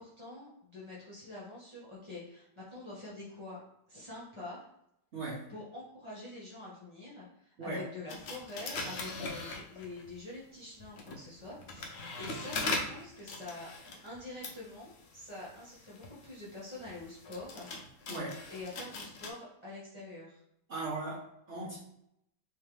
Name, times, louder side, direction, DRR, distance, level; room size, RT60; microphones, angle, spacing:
voice 1, 0.0-3.6 3.9-4.6 5.5-13.7 14.0-17.7 18.5-20.4, left 2 dB, 20° left, -8 dB, 1.0 m, -46 dB
voice 2, 5.1-5.4 7.6-7.8 18.1-18.4 20.7-21.8, right 2 dB, 45° right, -7 dB, 1.1 m, -38 dB
sound 1, 8.1-10.2 10.8-19.3, left 3 dB, 70° left, 0.6 m, -41 dB
3.5 x 3.4 x 3.2 m, 0.76 s
omnidirectional pair, 1.9 m